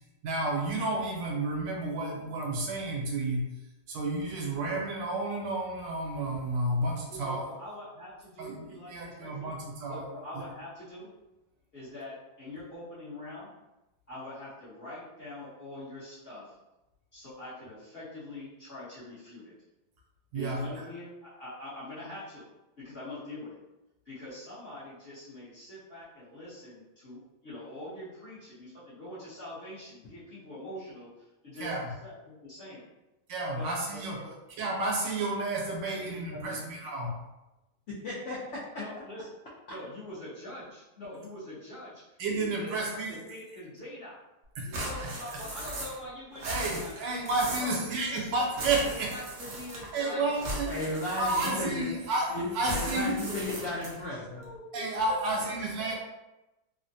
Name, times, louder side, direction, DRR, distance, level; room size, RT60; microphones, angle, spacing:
voice 1, 0.2-3.4 3.9-7.4 8.4-10.0 20.3-20.6 31.6-31.8 33.3-34.2 34.6-37.2 42.2-43.2 44.6-44.7 46.5-49.1 49.9-50.7 51.2-52.3 52.5-53.1 54.7-55.9, right 2 dB, 75° right, -2 dB, 1.4 m, -31 dB
voice 2, 7.1-9.6 9.9-11.1 11.7-13.5 14.1-16.6 17.1-19.5 20.3-22.4 22.8-23.5 24.0-32.8 33.6-34.3 35.9-36.7 38.8-39.3 39.7-44.2 44.6-47.1 47.6-47.8 48.1-48.3 48.8-50.5 53.3-53.4 54.0-55.9, left 1 dB, 45° left, -11 dB, 0.9 m, -44 dB
voice 3, 37.9-38.4 50.7-51.9 52.3-54.4, left 2 dB, 80° left, -7 dB, 0.6 m, -34 dB
sound 1, 44.7-46.1 46.3-47.8 48.5-50.0 50.4-51.9 52.6-54.1, right 1 dB, 60° right, 0.8 m, -38 dB
3.4 x 2.1 x 2.6 m, 0.97 s
omnidirectional pair, 2.0 m